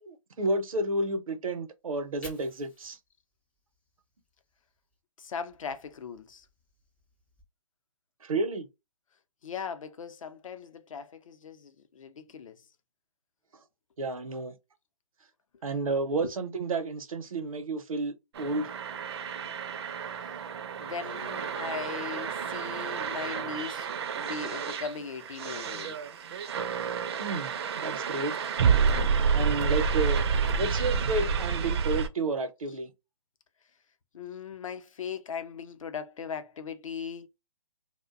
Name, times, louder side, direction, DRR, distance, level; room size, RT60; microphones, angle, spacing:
voice 1, 0.0-3.0 8.2-8.7 14.0-14.6 15.6-18.7 27.2-28.4 29.3-30.2 30.6-32.9, right 2 dB, 85° right, 0.7 m, -31 dB
Fire, 1.8-5.0 5.4-7.4, left 1 dB, 5° left, 0.4 m, -56 dB
voice 2, 5.2-6.4 9.4-12.6 16.2-16.3 20.8-26.0 34.1-37.3, left 6 dB, 70° left, 0.5 m, -39 dB
sound 1, 18.3-32.1, right 6 dB, 50° right, 0.4 m, -29 dB
2.5 x 2.1 x 2.4 m
hypercardioid pair, 145°, 17 cm